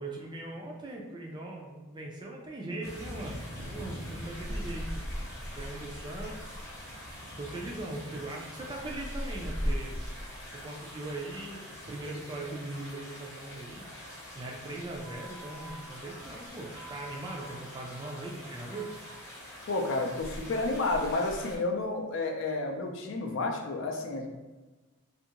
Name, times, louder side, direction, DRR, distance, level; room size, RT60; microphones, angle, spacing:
voice 1, 0.0-5.0 5.5-6.7 7.4-10.0 10.5-13.9 14.3-18.9, right 2 dB, 20° right, -1 dB, 0.4 m, -40 dB
sound 1, 2.8-21.6, equal, 10° left, 0.7 m, -41 dB
Wind instrument woodwind instrument, 15.0-19.2, right 2 dB, 65° right, 0.8 m, -51 dB
voice 2, 19.7-24.3, left 2 dB, 60° left, 2 dB, 0.4 m, -31 dB
2.6 x 2.5 x 2.8 m, 1.2 s
head